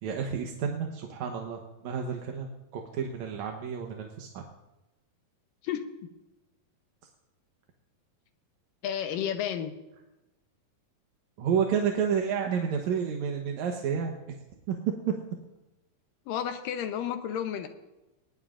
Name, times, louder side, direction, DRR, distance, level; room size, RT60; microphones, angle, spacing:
voice 1, 0.0-4.4 11.4-14.2 14.7-14.8, right 7 dB, 65° right, 2 dB, 2.1 m, -30 dB
voice 2, 8.8-9.7 16.3-17.7, left 9 dB, 75° left, 7 dB, 2.4 m, -31 dB
20.0 x 19.0 x 2.5 m, 1.0 s
omnidirectional pair, 4.1 m